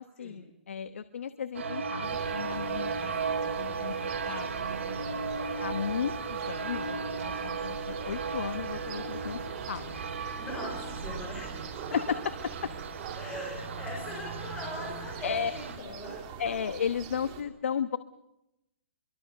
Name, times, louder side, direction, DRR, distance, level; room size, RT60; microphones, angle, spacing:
voice 1, 0.0-4.7 5.6-7.0 7.2-9.4 9.7-10.1 11.9-12.2 12.6-12.7 15.2-15.5 15.8-16.0 16.4-18.0, left 7 dB, 80° left, 12 dB, 1.1 m, -34 dB
sound 1, 1.5-15.8, right 5 dB, 80° right, 5.4 m, -35 dB
sound 2, 2.0-17.4, right 7 dB, 25° right, 2.6 m, -44 dB
voice 2, 10.4-11.7 13.1-16.3, left 1 dB, 10° left, -2 dB, 5.7 m, -40 dB
25.5 x 23.5 x 6.7 m, 0.88 s
hypercardioid pair, 170°, 7 cm